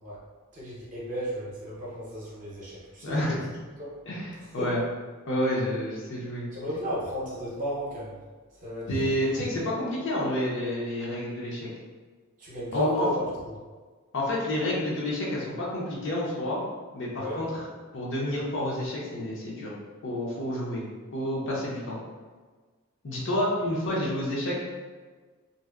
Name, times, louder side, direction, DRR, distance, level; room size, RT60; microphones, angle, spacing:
voice 1, 0.5-3.4 3.8-3.9 4.6-4.8 6.5-8.2 8.6-8.9 9.2-9.4 12.4-13.3 17.2-17.4, equal, 35° right, -6 dB, 0.7 m, -33 dB
voice 2, 3.0-3.5 4.1-4.8 5.3-6.5 8.9-11.7 12.7-13.1 14.1-16.6 16.9-17.6 17.9-19.7 20.0-20.8 21.1-22.0 23.0-24.6, left 1 dB, 60° left, -5 dB, 0.6 m, -29 dB
2.6 x 2.1 x 2.2 m, 1.4 s
head